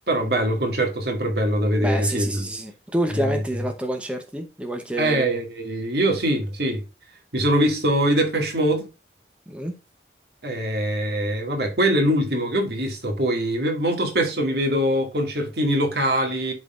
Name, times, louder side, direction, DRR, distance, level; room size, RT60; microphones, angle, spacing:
voice 1, 0.1-2.4 3.2-3.4 5.0-6.8 7.3-8.9 10.4-16.5, right 1 dB, 60° right, 2.0 m, -23 dB
voice 2, 1.8-5.2 9.5-9.7, right 1 dB, 5° right, 0.7 m, -28 dB
11.5 x 3.9 x 2.4 m
head